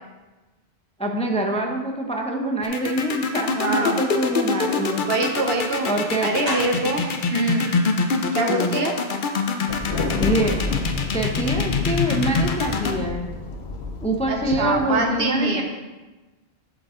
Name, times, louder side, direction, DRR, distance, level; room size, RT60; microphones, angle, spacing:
voice 1, 1.0-5.0 5.9-6.3 8.5-8.8 10.2-10.6 11.1-13.3 14.0-15.6, right 1 dB, 5° left, 2 dB, 0.6 m, -25 dB
sound 1, 2.6-12.9, left 4 dB, 55° left, 0.8 m, -24 dB
voice 2, 3.5-4.0 5.0-5.9 6.2-7.7 8.3-8.9 14.3-15.6, right 2 dB, 70° right, 2 dB, 1.2 m, -24 dB
sound 2, 6.4-8.2 8.6-8.7 9.0-9.2 9.4-9.5, right 1 dB, 25° right, 2.4 m, -34 dB
Thunder, 9.7-15.0, left 3 dB, 80° left, 1.1 m, -29 dB
11.5 x 4.9 x 3.7 m, 1.2 s
omnidirectional pair, 1.1 m